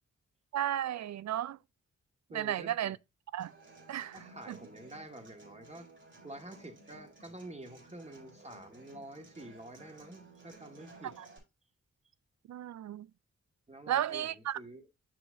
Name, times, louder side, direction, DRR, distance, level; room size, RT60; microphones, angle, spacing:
voice 1, 0.5-1.6 2.3-3.0 3.3-3.5 3.9-4.2 4.5-4.6 11.2-11.3 12.5-13.1 13.9-14.6, right 11 dB, 65° right, 0.5 m, -33 dB
voice 2, 2.3-2.9 4.1-5.9 6.2-11.3 13.7-14.9, right 1 dB, 20° right, 2.1 m, -48 dB
Human voice / Acoustic guitar, 3.4-11.4, right 3 dB, 40° right, 3.6 m, -56 dB
6.9 x 6.1 x 2.6 m
cardioid pair, 50°, 30 cm